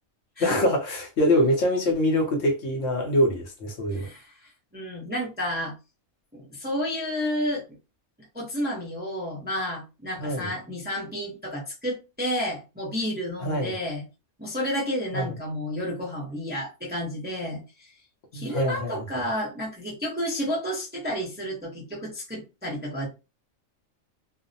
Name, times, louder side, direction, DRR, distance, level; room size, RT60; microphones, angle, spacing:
voice 1, 0.4-4.1 10.2-10.5 13.4-13.7 15.1-15.3 18.3-19.0, left 1 dB, 60° left, 0.9 m, -24 dB
voice 2, 3.9-5.7 6.3-7.6 8.3-14.0 14.4-17.9 18.3-23.1, equal, 10° right, 0.5 m, -31 dB
2.5 x 2.0 x 2.6 m
omnidirectional pair, 1.4 m